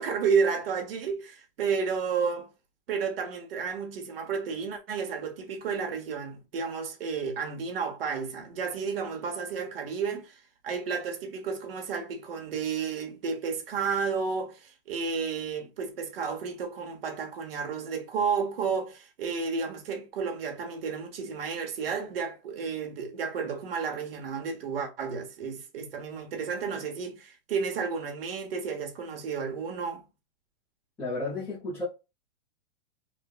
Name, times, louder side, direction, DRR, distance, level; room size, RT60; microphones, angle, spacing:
voice 1, 0.0-2.5 2.9-30.1, right 5 dB, 75° right, 1.0 m, -32 dB
voice 2, 31.0-31.8, left 2 dB, 5° left, 0.6 m, -32 dB
3.2 x 2.1 x 2.3 m
supercardioid pair, 170°, 29 cm